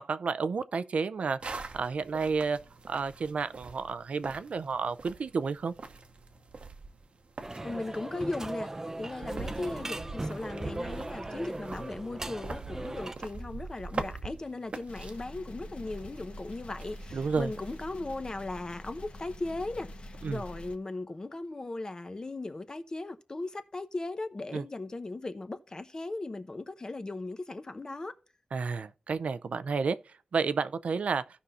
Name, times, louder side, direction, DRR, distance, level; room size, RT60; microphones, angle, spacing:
voice 1, 0.0-2.6 2.9-5.7 17.1-17.5 20.2-20.4 24.5-24.6 28.5-31.2, right 5 dB, 80° right, 0.5 m, -31 dB
sound 1, 1.4-18.0, right 3 dB, 60° right, 0.9 m, -44 dB
sound 2, 7.4-13.2, right 2 dB, 20° right, 0.5 m, -38 dB
voice 2, 7.6-8.7 9.0-28.1, left 2 dB, 35° left, 0.9 m, -37 dB
sound 3, 14.9-20.8, left 1 dB, 60° left, 1.1 m, -45 dB
16.0 x 5.6 x 2.5 m
wide cardioid pair, 120°, 2 cm